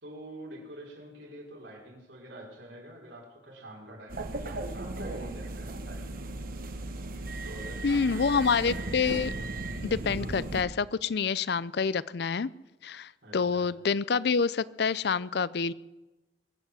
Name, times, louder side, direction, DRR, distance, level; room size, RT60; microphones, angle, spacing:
voice 1, 0.0-6.2 7.4-8.9 10.2-10.3 13.2-13.7, right 1 dB, 85° right, -2 dB, 4.6 m, -46 dB
sound 1, 4.1-10.6, right 2 dB, 50° right, 1.2 m, -36 dB
voice 2, 7.8-9.3 9.8-12.5 12.8-15.7, left 5 dB, 65° left, 19 dB, 0.5 m, -27 dB
22.5 x 8.1 x 7.5 m, 1.1 s
head